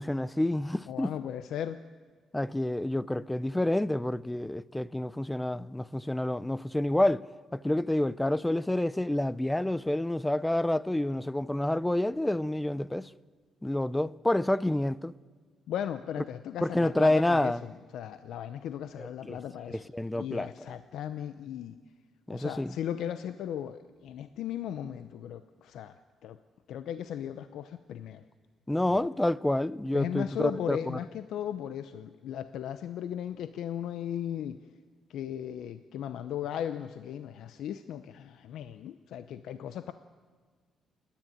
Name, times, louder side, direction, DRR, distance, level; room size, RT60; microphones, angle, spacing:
voice 1, 0.0-1.2 2.3-7.3 7.5-13.1 13.6-15.1 16.6-17.6 19.0-19.4 19.7-20.5 22.3-22.8 28.7-31.0, left 1 dB, 10° left, 0.5 m, -28 dB
voice 2, 0.9-1.8 15.7-19.8 20.1-21.8 22.3-26.0 26.2-26.4 26.7-28.2 28.9-29.1 29.9-34.6 35.1-39.9, left 10 dB, 80° left, 0.6 m, -37 dB
29.0 x 10.5 x 9.3 m
cardioid pair, 90°, 0 cm